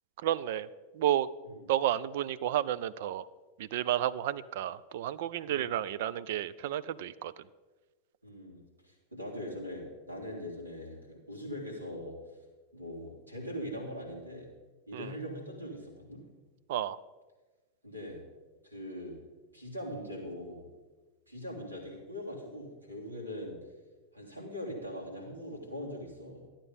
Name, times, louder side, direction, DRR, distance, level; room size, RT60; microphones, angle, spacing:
voice 1, 0.2-0.7 1.0-1.3 1.7-3.2 3.6-7.3 14.9-15.1 16.7-17.0, right 12 dB, 55° right, 17 dB, 0.4 m, -31 dB
voice 2, 5.4-5.7 8.2-12.1 12.7-14.5 14.9-16.2 17.8-18.2 18.6-19.2 19.5-20.7 21.3-23.6 24.1-26.4, equal, 90° right, -4 dB, 3.3 m, -41 dB
13.5 x 8.8 x 5.4 m, 1.3 s
figure-of-eight pair, 90°, 0 cm